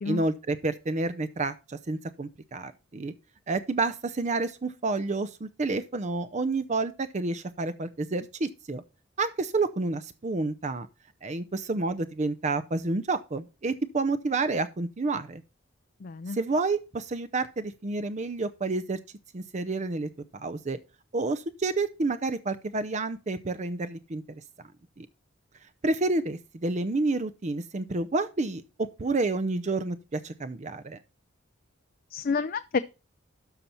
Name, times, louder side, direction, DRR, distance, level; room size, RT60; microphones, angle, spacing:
voice 1, 0.0-3.1 3.5-8.8 9.2-10.9 11.2-15.4 16.3-19.0 19.3-20.8 21.1-24.4 25.0-25.1 25.8-31.0, right 3 dB, 35° right, 0.5 m, -29 dB
voice 2, 16.0-16.4 32.1-32.8, left 5 dB, 45° left, 0.4 m, -29 dB
12.5 x 5.5 x 4.4 m
head